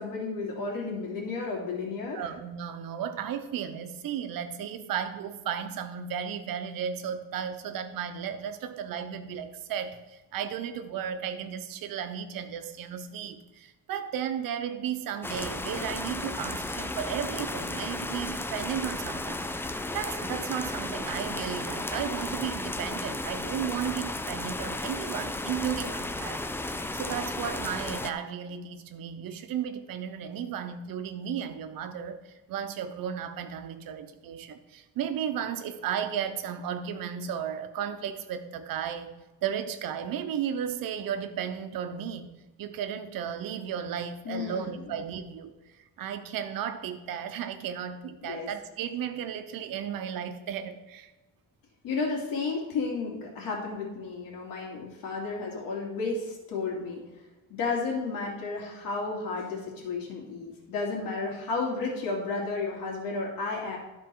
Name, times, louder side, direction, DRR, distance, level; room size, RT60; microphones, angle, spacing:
voice 1, 0.0-2.3 44.2-45.0 48.2-48.5 51.8-57.0 57.5-63.8, left 4 dB, 90° left, -1 dB, 2.7 m, -32 dB
voice 2, 2.1-19.5 19.9-26.4 26.9-39.1 39.4-42.3 42.6-45.5 46.0-51.1, right 8 dB, 80° right, 9 dB, 1.0 m, -34 dB
sound 1, 15.2-28.1, left 2 dB, 5° left, 0.3 m, -34 dB
12.5 x 4.4 x 4.7 m, 1.1 s
cardioid pair, 135°, 33 cm